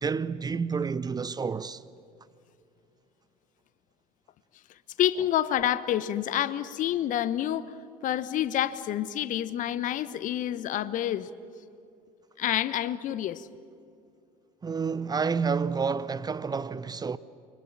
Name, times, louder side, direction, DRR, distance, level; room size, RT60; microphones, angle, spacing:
voice 1, 0.0-1.8 14.6-17.2, right 5 dB, 20° right, 0.8 m, -29 dB
voice 2, 5.0-7.7 8.0-11.3 12.4-13.5, left 12 dB, 45° left, 1.1 m, -28 dB
29.0 x 24.5 x 7.4 m
figure-of-eight pair, 60°, 18 cm